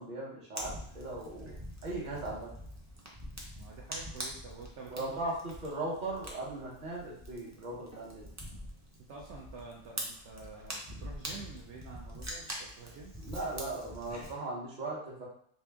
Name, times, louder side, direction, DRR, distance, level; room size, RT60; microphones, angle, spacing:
voice 1, 0.0-1.5 1.8-2.5 4.9-8.2 13.2-15.2, right 2 dB, 40° right, -4 dB, 1.1 m, -38 dB
Fire, 0.6-14.3, equal, 20° right, 0.4 m, -44 dB
voice 2, 3.6-5.2 9.1-13.1, right 4 dB, 70° right, -3 dB, 0.9 m, -48 dB
3.2 x 2.8 x 3.4 m, 0.65 s
omnidirectional pair, 1.3 m